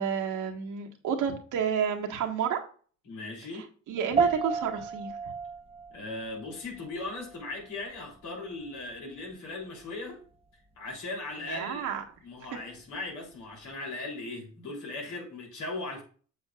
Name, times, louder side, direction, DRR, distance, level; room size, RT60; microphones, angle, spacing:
voice 1, 0.0-2.6 3.9-5.1 11.5-12.0, right 7 dB, 85° right, 1.6 m, -30 dB
voice 2, 3.0-3.7 5.9-10.2 10.5-11.9 12.2-16.0, left 2 dB, 75° left, 3.4 m, -38 dB
sound 1, 4.2-13.7, right 6 dB, 20° right, 0.9 m, -36 dB
7.5 x 7.1 x 2.4 m
cardioid pair, 90°, 30 cm